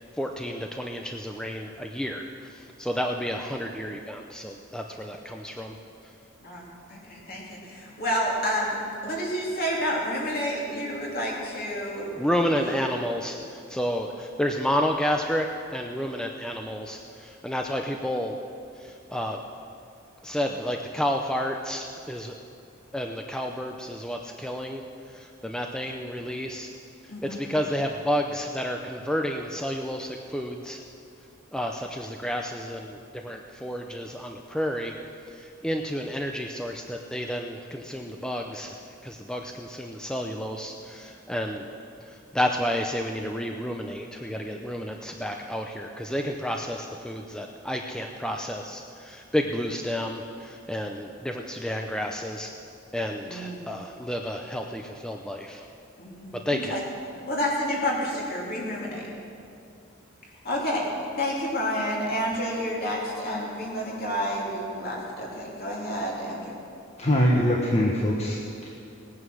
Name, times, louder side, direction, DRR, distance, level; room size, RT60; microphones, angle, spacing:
voice 1, 0.2-5.8 6.0-6.1 12.2-18.4 18.7-19.4 20.2-22.4 22.9-26.7 27.0-30.8 31.5-34.9 35.3-38.8 39.0-41.7 42.0-52.5 52.9-55.7 56.3-56.8, equal, 5° left, 3 dB, 0.5 m, -31 dB
voice 2, 6.4-12.1 12.5-12.7 27.1-27.4 53.3-53.6 56.0-56.8 57.3-59.0 60.4-60.8 61.2-66.4, equal, 50° left, -3 dB, 3.0 m, -29 dB
voice 3, 67.0-68.7, equal, 35° left, -2 dB, 1.2 m, -23 dB
18.0 x 9.6 x 6.3 m, 2.5 s
head